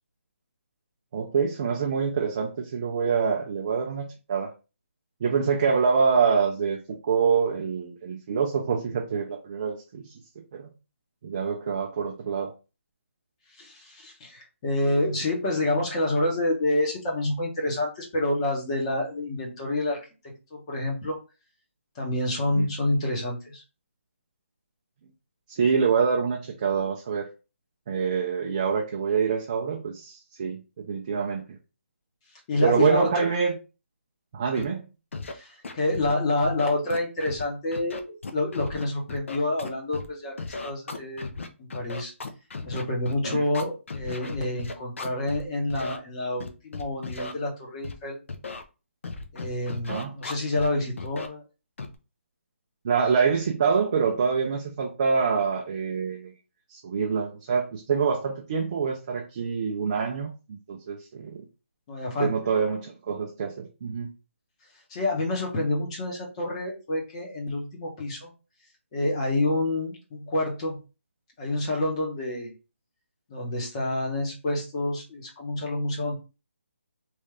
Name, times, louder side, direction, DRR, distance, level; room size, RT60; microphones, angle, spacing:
voice 1, 1.1-4.5 5.2-6.8 7.0-10.1 10.5-10.7 11.2-12.5 22.5-22.7 25.5-27.3 27.9-30.6 30.9-31.4 32.6-33.6 34.3-34.8 43.3-43.4 49.9-50.2 52.8-56.3 56.7-61.4 62.2-64.1, right 6 dB, 30° right, 0 dB, 0.5 m, -26 dB
voice 2, 13.6-20.0 20.5-21.2 21.9-23.6 32.5-33.3 35.3-40.3 40.6-41.3 41.6-42.1 42.6-48.2 49.3-51.4 61.9-62.3 64.9-68.3 68.9-70.8 71.4-72.5 73.3-76.1, left 1 dB, 25° left, -1 dB, 1.2 m, -28 dB
Scratching (performance technique), 34.5-34.6 35.1-35.3 35.6-36.1 36.4-37.4 37.7-40.1 40.4-45.4 45.7-46.0 46.4-47.3 47.8-48.0 48.3-48.6 49.0-50.7 51.0-51.3 51.8-52.0, left 4 dB, 65° left, 0.7 m, -35 dB
3.2 x 2.6 x 3.2 m, 0.31 s
hypercardioid pair, 165°, 7 cm